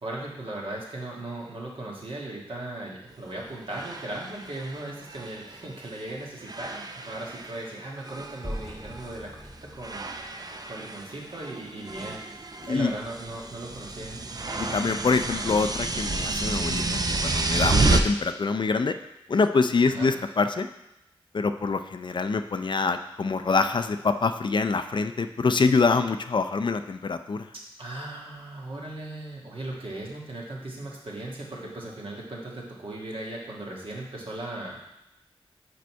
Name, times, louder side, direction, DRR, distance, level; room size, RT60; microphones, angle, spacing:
voice 1, 0.0-10.4 10.7-14.2 19.9-20.1 27.8-34.8, right 1 dB, 65° right, -3 dB, 1.5 m, -38 dB
sound 1, 3.1-3.2 3.7-6.1 6.4-7.7 8.0-9.2 9.8-18.0, right 3 dB, 40° right, 0.5 m, -30 dB
sound 2, 8.4-11.4, equal, ahead, 0.8 m, -41 dB
voice 2, 14.6-19.0 19.3-20.7 21.3-27.5, left 4 dB, 55° left, 9 dB, 0.4 m, -25 dB
5.0 x 4.5 x 4.6 m, 0.88 s
cardioid pair, 45°, 10 cm